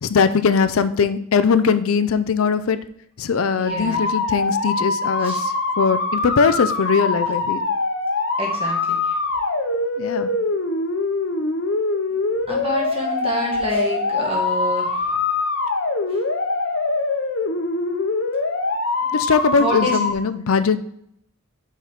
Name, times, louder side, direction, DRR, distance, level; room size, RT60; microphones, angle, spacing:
voice 1, 0.0-2.8 3.2-7.6 10.0-10.3 19.1-20.8, left 5 dB, 80° left, 12 dB, 0.5 m, -20 dB
voice 2, 3.6-4.0 5.2-5.4 8.4-9.0 12.5-14.9 19.6-19.9, equal, 25° right, -2 dB, 2.0 m, -27 dB
sound 1, 3.7-20.1, left 3 dB, 60° left, 0.9 m, -23 dB
5.8 x 4.7 x 5.6 m, 0.70 s
head